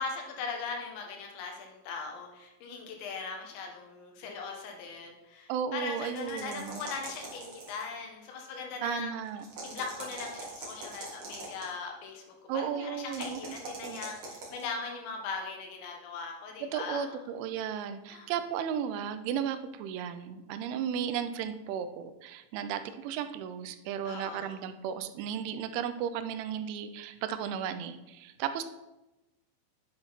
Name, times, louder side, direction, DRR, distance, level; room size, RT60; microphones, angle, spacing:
voice 1, 0.0-9.1 9.6-17.2 18.1-18.3 24.0-24.6, left 4 dB, 75° left, 2 dB, 3.4 m, -39 dB
voice 2, 5.5-6.8 8.8-9.5 12.5-14.0 16.6-28.6, right 8 dB, 85° right, 10 dB, 3.0 m, -35 dB
sound 1, 6.0-7.9 9.4-11.7 13.1-14.7, right 3 dB, 50° right, 1.6 m, -43 dB
9.2 x 7.8 x 4.0 m, 0.99 s
omnidirectional pair, 5.4 m